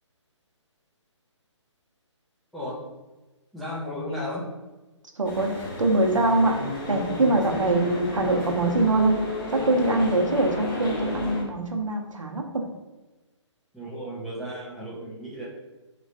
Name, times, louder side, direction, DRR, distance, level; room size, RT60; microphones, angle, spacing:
voice 1, 3.5-4.5 13.7-15.5, equal, ahead, -8 dB, 0.3 m, -34 dB
sound 1, 5.2-11.4, left 2 dB, 45° left, 0.8 m, -31 dB
voice 2, 5.2-6.6 6.9-9.2 9.5-12.6, right 2 dB, 85° right, 3 dB, 0.7 m, -23 dB
3.1 x 3.0 x 2.5 m, 1.1 s
figure-of-eight pair, 140°, 16 cm